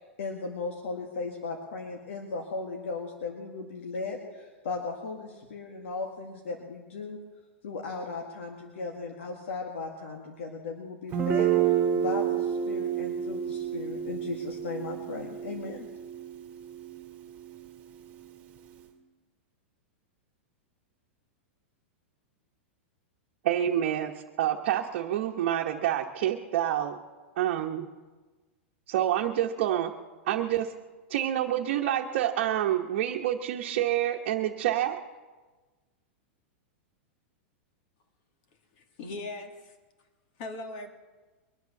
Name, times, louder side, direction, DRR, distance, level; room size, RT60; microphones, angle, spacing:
voice 1, 0.0-7.2 7.6-15.9, left 4 dB, 85° left, 1 dB, 1.9 m, -37 dB
Guitar, 11.1-18.8, right 9 dB, 25° right, 1.9 m, -30 dB
voice 2, 23.4-27.0 27.4-27.9 28.9-29.9 30.2-30.7 31.1-35.0, right 11 dB, 60° right, 0 dB, 1.1 m, -27 dB
voice 3, 38.7-39.8 40.4-40.9, left 2 dB, 50° left, 6 dB, 2.2 m, -39 dB
22.5 x 8.3 x 7.1 m, 1.3 s
supercardioid pair, 150°, 7 cm